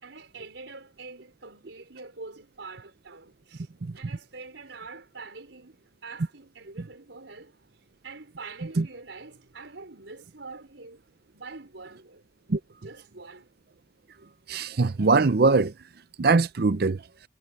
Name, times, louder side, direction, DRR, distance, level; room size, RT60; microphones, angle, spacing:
voice 1, 0.0-5.8 6.0-11.0 11.3-12.2 12.8-13.5, right 3 dB, 80° right, 4.7 m, -45 dB
voice 2, 14.5-15.7 16.2-17.0, right 3 dB, 55° right, 0.6 m, -22 dB
head